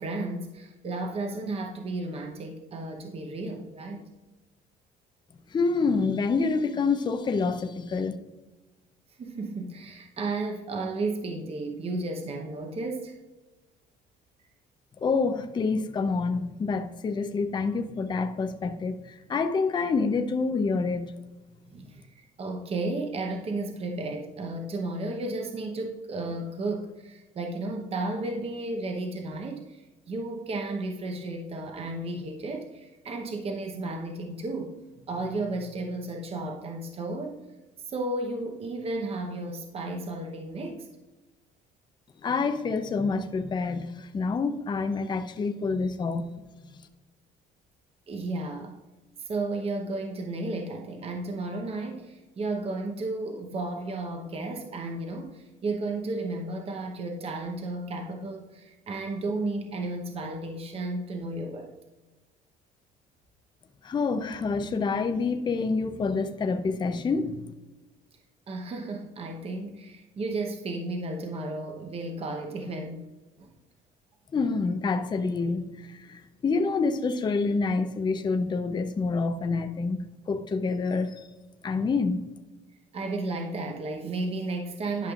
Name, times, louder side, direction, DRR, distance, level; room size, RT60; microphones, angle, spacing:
voice 1, 0.0-4.1 9.2-13.2 21.7-37.4 37.8-40.9 48.1-48.8 49.2-61.7 68.5-73.1 73.4-73.5 82.9-85.1, right 2 dB, 35° right, 0.9 m, -33 dB
voice 2, 5.5-8.2 15.0-21.1 42.2-46.3 63.8-67.4 74.3-81.3 81.6-82.2, left 4 dB, 25° left, 0.6 m, -27 dB
11.5 x 5.5 x 2.4 m
cardioid pair, 110°, 17 cm